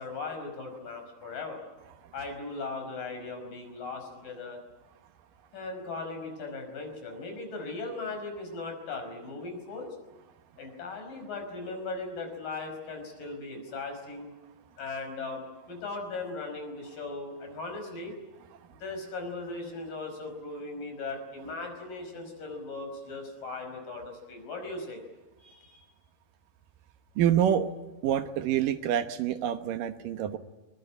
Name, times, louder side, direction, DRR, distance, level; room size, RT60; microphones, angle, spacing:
voice 1, 0.0-1.6 2.1-4.6 5.5-10.0 10.6-14.3 14.8-18.1 18.8-25.0 25.4-25.9, left 3 dB, 70° left, 4 dB, 7.0 m, -38 dB
voice 2, 27.2-27.7 28.0-30.4, right 10 dB, 75° right, 10 dB, 2.7 m, -26 dB
22.0 x 22.0 x 10.0 m, 1.1 s
omnidirectional pair, 4.0 m